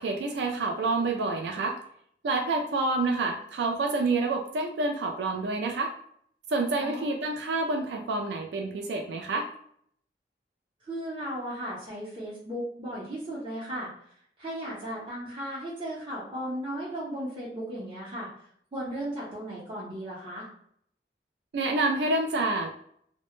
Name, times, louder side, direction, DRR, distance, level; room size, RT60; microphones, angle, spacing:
voice 1, 0.0-1.8 2.2-5.9 6.5-9.5 21.5-22.9, right 3 dB, 75° right, 3 dB, 0.3 m, -28 dB
voice 2, 6.8-7.1 10.8-13.9 14.4-18.3 18.7-20.5, equal, 30° right, -8 dB, 0.6 m, -36 dB
2.1 x 2.0 x 3.0 m, 0.67 s
head